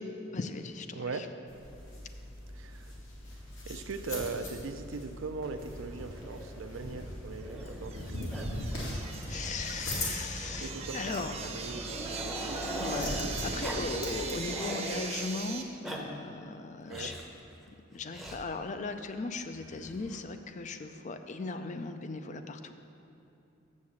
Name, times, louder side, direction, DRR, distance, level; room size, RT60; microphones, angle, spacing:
voice 1, 0.3-1.3 9.2-11.3 12.5-17.1 17.9-22.8, left 3 dB, 35° left, 8 dB, 0.4 m, -38 dB
voice 2, 0.9-1.3 2.5-2.9 3.6-8.5 10.6-12.7 16.9-17.1, right 4 dB, 75° right, 7 dB, 0.5 m, -40 dB
sound 1, 1.5-14.4, left 1 dB, 70° left, 2.1 m, -40 dB
Growling, 6.1-8.0 8.3-8.5 8.7-8.9 9.2-9.3 10.3-13.2 13.6-13.9 14.2-14.9 15.6-16.0 16.9-17.3 18.1-18.4 19.5-20.2, equal, ahead, 0.7 m, -42 dB
sound 2, 7.6-15.6, right 4 dB, 30° right, 0.7 m, -39 dB
7.5 x 6.4 x 7.1 m, 2.7 s
head